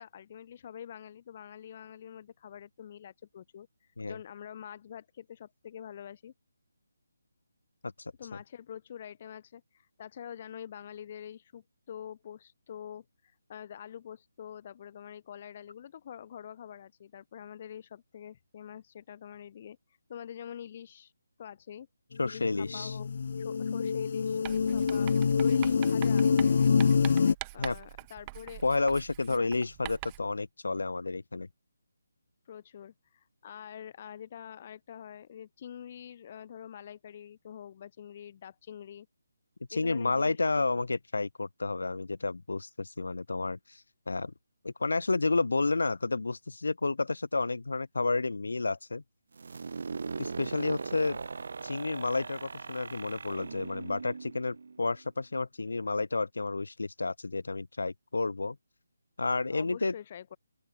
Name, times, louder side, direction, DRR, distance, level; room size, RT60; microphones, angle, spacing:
voice 1, 0.0-6.3 8.2-19.8 20.1-21.1 21.4-21.9 22.2-23.1 23.4-25.1 25.4-26.3 27.5-28.6 29.3-29.5 32.5-39.1 39.7-40.6 59.5-60.4, left 9 dB, 30° left, 8.0 m, -46 dB
voice 2, 22.2-23.0 27.6-27.8 28.6-31.5 39.7-43.8 44.1-44.3 44.6-49.0 50.2-51.2 51.6-58.6 59.2-59.9, left 3 dB, 80° left, 1.8 m, -31 dB
sound 1, 22.3-27.3, left 5 dB, 50° left, 0.6 m, -26 dB
Writing, 24.4-30.3, right 23 dB, 20° right, 0.8 m, -44 dB
sound 2, 49.4-55.0, right 4 dB, 60° right, 2.1 m, -39 dB
open air
hypercardioid pair, 165°, 0 cm